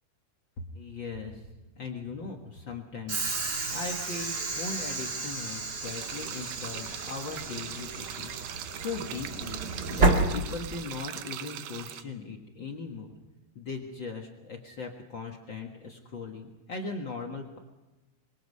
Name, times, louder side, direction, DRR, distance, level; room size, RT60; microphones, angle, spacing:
voice 1, 0.7-1.5 1.7-3.3 3.7-9.6 9.9-13.1 13.5-17.6, left 4 dB, 80° left, 1 dB, 1.0 m, -39 dB
Train / Sliding door, 3.1-11.1, right 3 dB, 45° right, 1.3 m, -31 dB
sound 1, 5.8-12.0, right 11 dB, 75° right, 2.0 m, -41 dB
26.0 x 22.5 x 5.5 m, 1.1 s
omnidirectional pair, 4.9 m